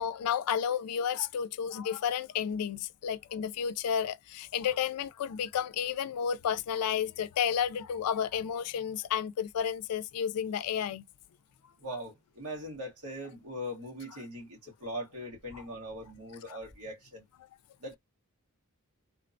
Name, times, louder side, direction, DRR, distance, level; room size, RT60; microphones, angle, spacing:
voice 1, 0.0-11.0 16.5-16.6, left 8 dB, 90° left, 0.4 m, -31 dB
voice 2, 11.8-17.2 17.8-18.0, equal, 85° right, 1.4 m, -41 dB
3.3 x 2.1 x 2.5 m
head